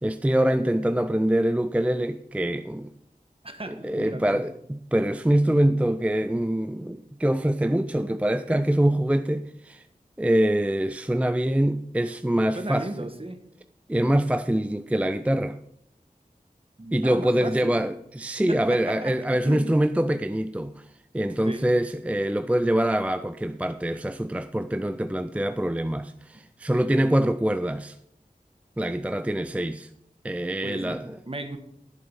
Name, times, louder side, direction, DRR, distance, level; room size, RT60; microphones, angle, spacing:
voice 1, 0.0-2.9 3.7-9.8 10.2-12.9 13.9-15.6 16.9-20.9 21.1-28.0 28.8-29.9 30.2-31.2, right 1 dB, 10° right, 0.4 m, -24 dB
voice 2, 3.4-4.5 12.5-13.4 16.8-17.9 18.5-19.7 21.4-21.7 30.6-31.6, right 2 dB, 40° right, 1.3 m, -36 dB
10.5 x 7.6 x 5.4 m
wide cardioid pair, 50°, 15 cm